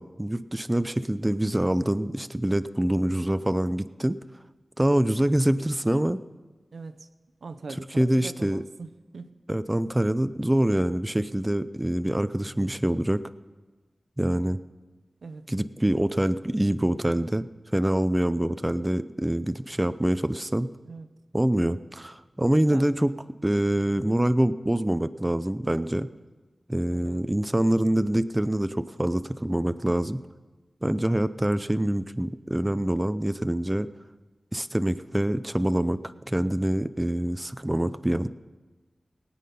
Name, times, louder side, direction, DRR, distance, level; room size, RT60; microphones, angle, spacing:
voice 1, 0.0-4.2 4.8-6.2 8.0-8.6 9.5-13.3 14.2-14.6 15.5-17.5 17.7-20.7 21.3-23.1 23.4-26.1 26.7-30.2 30.8-33.9 34.5-36.0 36.3-38.3, right 1 dB, 15° right, 12 dB, 0.5 m, -25 dB
voice 2, 6.7-7.1 7.4-9.4 9.8-9.9 15.2-15.6 20.8-21.1 22.7-22.9 25.9-26.0 26.9-27.3 36.7-36.9, right 4 dB, 85° right, 9 dB, 0.7 m, -42 dB
18.0 x 8.6 x 5.5 m, 1.2 s
cardioid pair, 45°, 0 cm